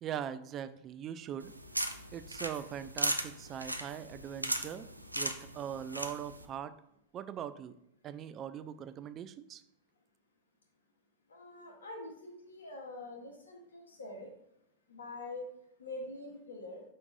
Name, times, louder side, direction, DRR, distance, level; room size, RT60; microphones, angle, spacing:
voice 1, 0.0-1.5 2.1-4.9 5.2-6.7 7.1-7.7 8.0-9.6, right 9 dB, 30° right, 13 dB, 0.4 m, -41 dB
sound 1, 1.4-6.5, right 1 dB, 85° right, 0.5 m, -37 dB
voice 2, 11.3-14.3 14.9-15.5 15.8-16.8, left 2 dB, 70° left, 1 dB, 1.5 m, -45 dB
6.4 x 5.9 x 2.6 m, 0.77 s
figure-of-eight pair, 90°, 0 cm